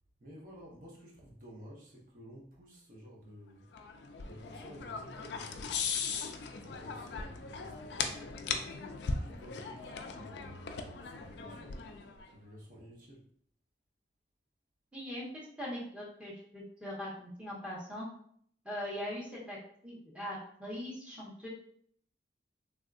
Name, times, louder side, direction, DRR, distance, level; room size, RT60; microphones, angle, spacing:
voice 1, 0.2-3.7 4.2-5.9 6.6-8.5 9.2-11.9 12.3-13.2, equal, 45° right, -3 dB, 0.8 m, -52 dB
sound 1, 3.7-12.3, left 5 dB, 65° left, 0.3 m, -39 dB
voice 2, 14.9-18.1 18.6-19.6 19.8-21.5, equal, 5° right, -7 dB, 0.9 m, -41 dB
3.4 x 2.6 x 2.4 m, 0.63 s
head